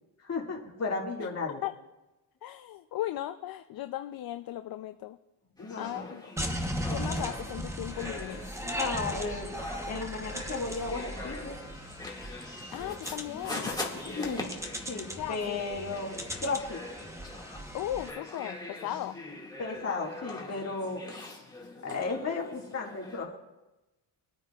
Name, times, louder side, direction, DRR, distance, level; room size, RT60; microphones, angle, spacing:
voice 1, 0.2-1.6 5.6-6.1 8.6-9.6 9.8-11.6 13.4-14.5 14.9-16.1 16.4-16.8 19.6-21.0 21.8-23.3, left 4 dB, 35° left, -1 dB, 2.1 m, -34 dB
voice 2, 2.4-5.2 5.8-6.2 6.9-8.5 12.7-13.7 15.2-15.6 17.7-19.2, left 13 dB, 55° left, 9 dB, 0.5 m, -36 dB
sound 1, 5.6-23.2, left 2 dB, 10° left, 1.9 m, -43 dB
sound 2, 6.4-18.1, equal, 5° right, 1.0 m, -38 dB
23.5 x 9.1 x 2.4 m, 1.0 s
cardioid pair, 110°, 45 cm